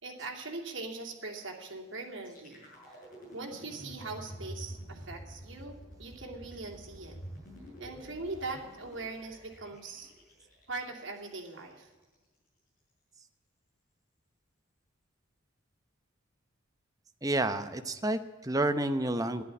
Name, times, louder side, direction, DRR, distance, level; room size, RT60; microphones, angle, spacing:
voice 1, 0.0-3.0 3.3-7.2 7.8-10.1 10.7-11.9, right 3 dB, 65° right, 0 dB, 2.9 m, -41 dB
sound 1, 2.2-12.2, equal, 40° left, 6.7 m, -48 dB
voice 2, 17.2-19.4, right 1 dB, 15° right, 9 dB, 0.8 m, -30 dB
13.0 x 11.0 x 8.5 m, 1.3 s
head